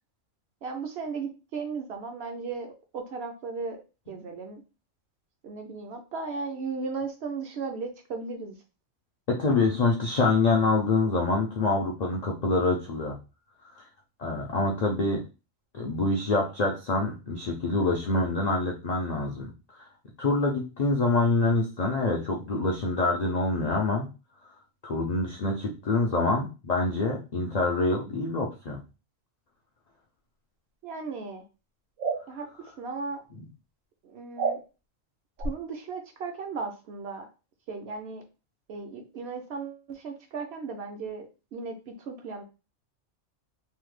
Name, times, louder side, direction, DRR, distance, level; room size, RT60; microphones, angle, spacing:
voice 1, 0.6-3.8 4.1-4.6 5.4-8.5 30.8-31.4 32.3-32.5 32.8-33.2 34.0-34.6 35.4-37.3 37.7-38.2 38.7-41.3 41.5-42.4, right 4 dB, 60° right, 4 dB, 0.8 m, -36 dB
voice 2, 9.3-13.2 13.8-13.9 14.2-15.2 15.7-19.5 20.2-24.1 24.8-28.8 33.4-33.5, left 3 dB, 65° left, -1 dB, 0.4 m, -26 dB
sound 1, 32.0-32.2 34.4-34.6 35.4-35.5, right 4 dB, 90° right, 1.0 m, -28 dB
3.2 x 2.0 x 3.1 m, 0.31 s
omnidirectional pair, 1.3 m